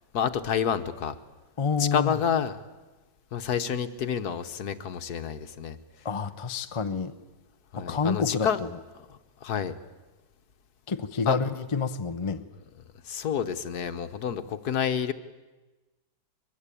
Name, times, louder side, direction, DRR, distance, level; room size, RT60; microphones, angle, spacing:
voice 1, 0.1-1.2 1.8-2.5 3.3-5.8 7.7-8.6 9.1-9.8 11.3-11.4 13.0-15.1, left 8 dB, 65° left, 1.5 m, -29 dB
voice 2, 1.6-2.2 6.0-7.1 7.8-8.7 10.9-12.4, left 5 dB, 30° left, 0.6 m, -28 dB
23.5 x 22.0 x 8.5 m
omnidirectional pair, 1.9 m